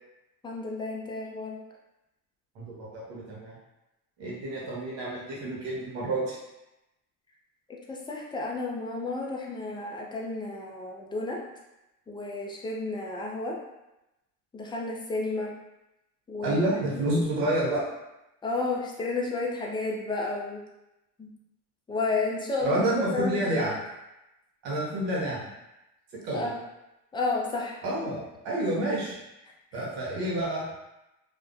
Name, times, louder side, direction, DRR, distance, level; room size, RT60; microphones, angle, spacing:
voice 1, 0.4-1.6 7.9-11.4 12.1-13.6 14.5-15.5 16.3-16.6 16.9-17.2 18.4-20.6 21.2-21.3 21.9-23.7 26.3-26.6 27.1-27.8, left 3 dB, 10° left, -2 dB, 0.4 m, -31 dB
voice 2, 2.5-3.6 4.2-6.4 16.4-17.8 22.6-23.7 24.6-25.5 26.2-26.5 27.8-29.1 29.7-30.6, right 1 dB, 70° right, -5 dB, 1.0 m, -29 dB
2.4 x 2.1 x 2.5 m, 0.94 s
hypercardioid pair, 65°, 47 cm